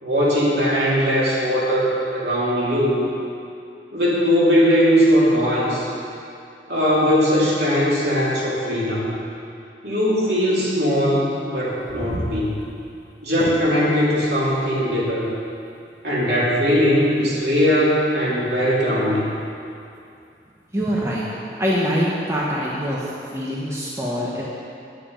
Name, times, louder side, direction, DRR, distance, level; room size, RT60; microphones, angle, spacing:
voice 1, 0.0-3.0 3.9-5.9 6.7-9.1 9.8-12.5 13.2-15.3 16.0-19.3, equal, 65° right, -6 dB, 2.7 m, -19 dB
sound 1, 11.6-23.7, right 1 dB, 40° right, 1.0 m, -40 dB
voice 2, 20.7-21.3 21.6-23.0 23.3-24.4, equal, 15° right, -6 dB, 1.0 m, -24 dB
9.6 x 9.1 x 5.2 m, 2.6 s
head